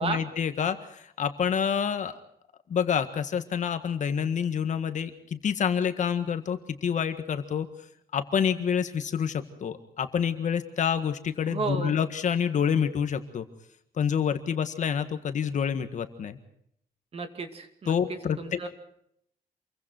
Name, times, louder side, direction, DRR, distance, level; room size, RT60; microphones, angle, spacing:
voice 1, 0.0-2.2 2.7-7.7 8.1-13.5 14.0-16.4 17.9-18.7, left 7 dB, 50° left, 9 dB, 1.7 m, -28 dB
voice 2, 11.5-12.0 17.1-18.7, right 4 dB, 40° right, 8 dB, 2.4 m, -33 dB
27.5 x 23.0 x 4.5 m, 0.71 s
wide cardioid pair, 175°, 16 cm